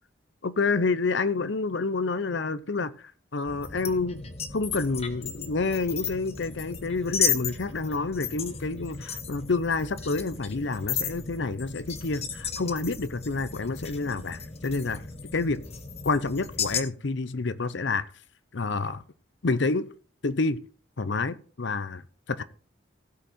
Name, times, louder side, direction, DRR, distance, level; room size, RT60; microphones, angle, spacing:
voice 1, 0.4-2.9 3.3-4.3 4.5-15.0 15.3-15.6 16.0-18.1 18.5-19.0 19.4-19.9 20.2-20.6 21.0-22.0 22.3-22.4, left 3 dB, 65° left, 0.7 m, -28 dB
sound 1, 3.5-16.8, left 6 dB, 30° left, 0.9 m, -34 dB
16.0 x 5.6 x 4.2 m
head